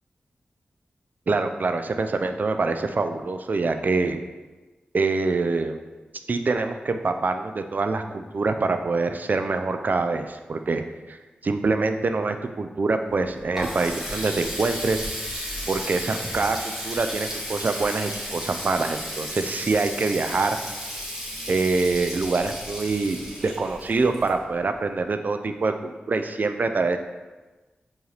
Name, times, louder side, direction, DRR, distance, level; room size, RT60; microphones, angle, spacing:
voice 1, 1.3-4.2 4.9-5.8 6.3-11.2 11.4-15.0 15.7-20.6 21.5-27.0, right 3 dB, 55° right, 7 dB, 0.3 m, -25 dB
Water tap faucet, 13.1-24.8, equal, 10° right, 1.3 m, -34 dB
4.5 x 2.9 x 3.3 m, 1.2 s
cardioid pair, 50°, 4 cm